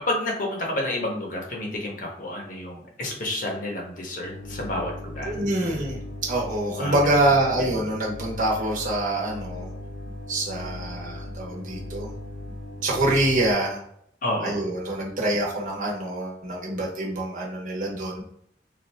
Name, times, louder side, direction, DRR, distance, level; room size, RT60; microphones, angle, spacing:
voice 1, 0.1-5.8 6.7-7.3 14.2-14.6, left 1 dB, 50° left, 0 dB, 0.9 m, -30 dB
sound 1, 4.2-13.5, left 2 dB, 85° left, 0.9 m, -38 dB
voice 2, 5.2-6.0 6.2-9.7 10.3-12.1 12.8-13.8 14.4-18.2, right 1 dB, 45° right, -3 dB, 1.1 m, -25 dB
4.2 x 2.5 x 3.3 m, 0.69 s
head